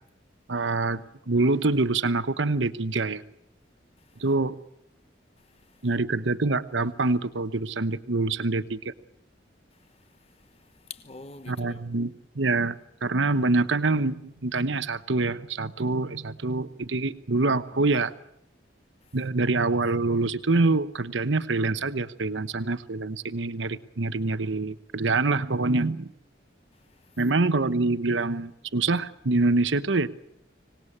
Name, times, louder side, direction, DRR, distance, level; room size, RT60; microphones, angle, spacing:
voice 1, 0.5-3.2 4.2-4.6 5.8-8.9 11.5-18.1 19.1-26.1 27.2-30.1, right 3 dB, 80° right, 1.0 m, -25 dB
voice 2, 5.4-5.9 9.7-11.9 19.0-19.2 26.7-27.2, left 4 dB, 30° left, 1.2 m, -48 dB
25.5 x 19.0 x 8.7 m
head